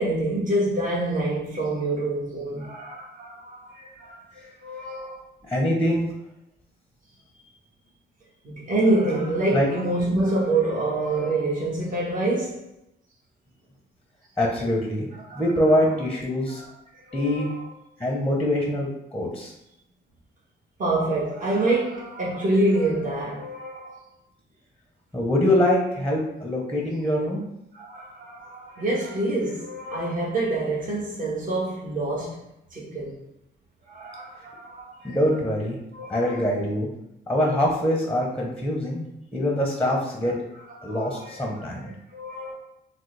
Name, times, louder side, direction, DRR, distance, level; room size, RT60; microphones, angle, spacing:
voice 1, 0.0-5.2 8.4-12.6 15.1-15.5 16.5-16.7 17.1-17.7 20.8-24.0 27.7-32.4 32.7-33.2 33.9-35.2 35.9-36.4 40.2-40.3 40.8-41.7 42.1-42.5, right 2 dB, 40° right, 1.2 m, -27 dB
voice 2, 5.4-6.1 9.5-9.7 14.4-15.0 15.3-16.6 17.1-17.5 18.0-19.5 25.1-27.4 35.0-35.8 36.1-36.9 37.3-39.0 39.3-40.3 40.8-41.9, left 1 dB, 5° left, 0.7 m, -24 dB
3.6 x 2.0 x 3.2 m
cardioid pair, 90°, 20 cm